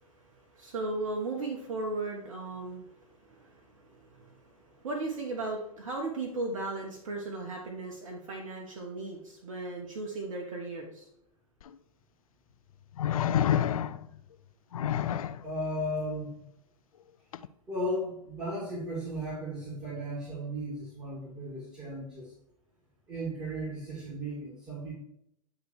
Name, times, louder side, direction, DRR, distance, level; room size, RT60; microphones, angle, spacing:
voice 1, 0.0-11.1, right 2 dB, 65° right, 1 dB, 1.2 m, -37 dB
sound 1, 11.6-11.7 13.0-14.2 14.7-15.4 17.3-17.5, left 10 dB, 70° left, 0.4 m, -28 dB
voice 2, 15.4-16.4 17.7-22.3 23.1-24.9, equal, 20° right, -6 dB, 2.5 m, -35 dB
9.3 x 3.3 x 4.5 m, 0.77 s
hypercardioid pair, 105°, 18 cm